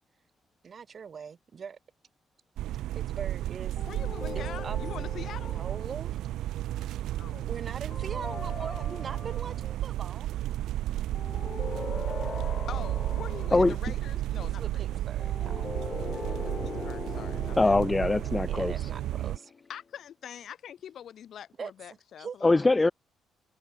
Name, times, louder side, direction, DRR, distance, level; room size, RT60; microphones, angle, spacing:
voice 1, 0.6-1.8 2.9-3.8 4.3-4.8 5.4-6.2 7.5-10.3 14.4-15.7 18.5-19.5 21.6-21.7 22.2-22.4, right 6 dB, 45° right, 2.0 m, -41 dB
sound 1, 2.6-19.4, right 14 dB, 85° right, 1.1 m, -33 dB
sound 2, 3.8-6.2 7.9-9.7 11.1-13.9 15.2-19.7, left 5 dB, 40° left, 3.5 m, -41 dB
voice 2, 3.9-5.6 7.2-7.5 12.7-15.0 16.6-17.8 19.7-22.8, left 9 dB, 65° left, 1.5 m, -44 dB
voice 3, 17.6-18.9 22.4-22.9, left 2 dB, 20° left, 0.3 m, -23 dB
cardioid pair, 90°, 0 cm